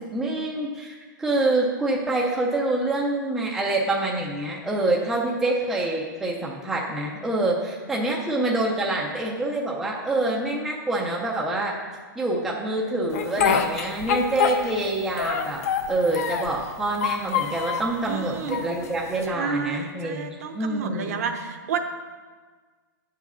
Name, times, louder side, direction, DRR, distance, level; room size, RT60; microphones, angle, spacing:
voice 1, 0.0-11.8 12.2-20.3 20.5-21.2, right 2 dB, ahead, -3 dB, 0.4 m, -26 dB
Speech, 13.1-14.9 15.2-16.6 16.9-17.9 18.5-19.3, left 7 dB, 45° left, 0.6 m, -25 dB
voice 2, 18.0-18.6 19.3-21.8, right 6 dB, 45° right, 6 dB, 0.7 m, -30 dB
8.1 x 4.8 x 6.8 m, 1.4 s
hypercardioid pair, 170°, 11 cm